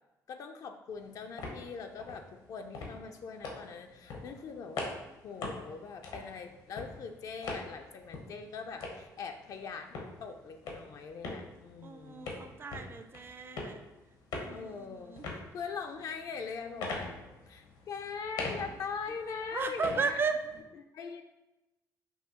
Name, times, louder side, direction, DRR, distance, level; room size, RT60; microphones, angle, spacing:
voice 1, 0.3-5.0 5.2-12.3 14.5-17.2 17.5-20.2 20.8-21.2, left 5 dB, 55° left, 5 dB, 0.4 m, -42 dB
sound 1, 0.9-20.6, left 3 dB, 85° left, 0.9 m, -44 dB
voice 2, 11.8-13.8 14.4-15.3 19.5-20.4, right 5 dB, 35° right, 9 dB, 0.4 m, -35 dB
5.5 x 2.7 x 2.9 m, 1.0 s
cardioid pair, 90°, 7 cm